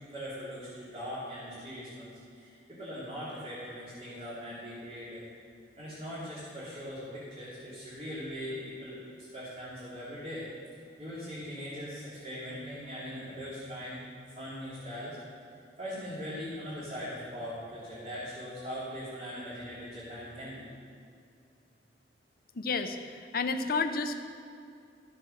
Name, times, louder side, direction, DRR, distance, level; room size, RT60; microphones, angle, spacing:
voice 1, 0.1-5.2 5.8-9.0 9.3-10.5 11.0-14.0 14.4-15.2 15.8-20.7, equal, 35° right, -11 dB, 3.2 m, -40 dB
voice 2, 22.5-24.2, left 4 dB, 55° left, 8 dB, 0.8 m, -31 dB
14.5 x 7.6 x 6.6 m, 2.4 s
head